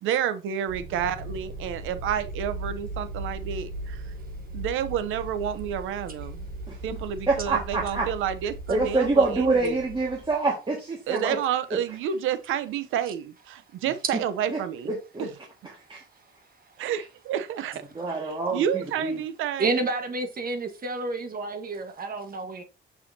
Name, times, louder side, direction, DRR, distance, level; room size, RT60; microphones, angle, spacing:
voice 1, 0.0-4.0 4.5-6.5 6.8-9.8 11.1-15.3 16.8-19.8, right 9 dB, 90° right, 0.7 m, -30 dB
sound 1, 0.7-10.3, right 1 dB, 65° right, 2.1 m, -38 dB
voice 2, 7.3-8.1 8.7-11.4 14.5-14.6 14.9-15.3 15.6-16.0 18.0-19.2, right 3 dB, 25° right, 1.8 m, -26 dB
voice 3, 19.6-22.6, right 3 dB, 45° right, 1.4 m, -29 dB
6.4 x 5.7 x 2.7 m
cardioid pair, 90°, 20 cm